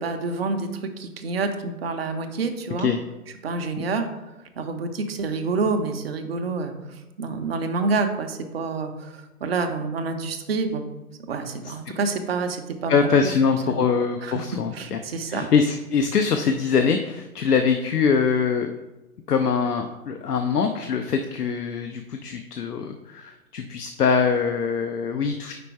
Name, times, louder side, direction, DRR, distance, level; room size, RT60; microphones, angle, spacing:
voice 1, 0.0-2.9 3.4-4.1 4.6-10.8 11.3-13.3 13.7-13.8 14.2-14.3 14.7-15.5, right 4 dB, 40° right, 6 dB, 0.7 m, -28 dB
voice 2, 12.9-15.0 15.3-18.7 19.3-25.5, left 6 dB, 80° left, 5 dB, 0.7 m, -23 dB
5.1 x 4.2 x 4.6 m, 1.0 s
figure-of-eight pair, 140°, 45 cm